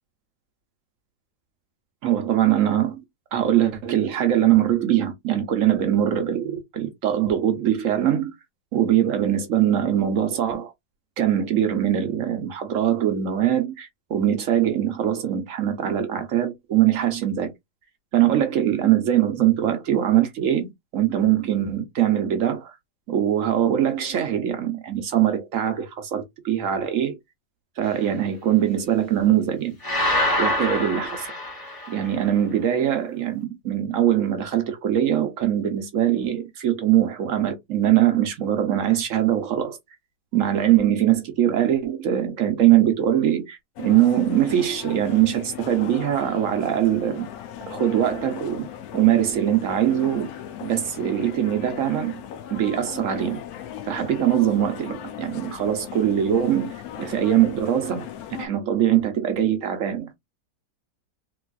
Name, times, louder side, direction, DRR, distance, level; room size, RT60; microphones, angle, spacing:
voice 1, 2.0-3.0 3.3-8.3 8.7-10.7 11.2-17.5 18.1-22.8 23.1-27.2 27.8-29.8 30.1-31.3 31.9-39.8 40.3-47.3 47.6-48.7 48.9-50.3 50.6-52.2 52.5-53.4 53.8-58.1 58.4-60.1, right 11 dB, 65° right, 0.8 m, -22 dB
sound 1, 29.8-32.1, left 1 dB, 20° left, 0.6 m, -25 dB
sound 2, 43.8-58.5, left 10 dB, 70° left, 1.0 m, -38 dB
3.3 x 3.0 x 2.3 m
omnidirectional pair, 1.8 m